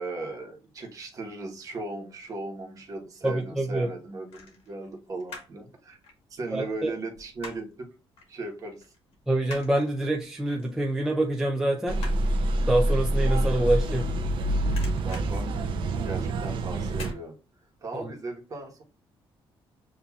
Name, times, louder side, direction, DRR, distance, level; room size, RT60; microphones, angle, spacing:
voice 1, 0.0-6.0 6.3-7.9 8.3-8.8 15.0-15.5 16.0-17.3 17.8-18.8, right 2 dB, 35° right, 1 dB, 1.1 m, -37 dB
sound 1, 2.8-3.4 4.3-5.6 5.9-7.8 8.2-8.3 8.7-14.3 14.6-16.3 16.9-17.2 17.6-17.7, left 3 dB, 80° left, 1.4 m, -46 dB
voice 2, 3.2-3.9 6.5-6.9 9.3-12.0 12.7-14.1, right 1 dB, 5° right, 1 dB, 0.4 m, -26 dB
sound 2, 11.9-17.1, right 1 dB, 55° right, 0.6 m, -26 dB
6.9 x 2.6 x 2.3 m, 0.34 s
cardioid pair, 165°, 10 cm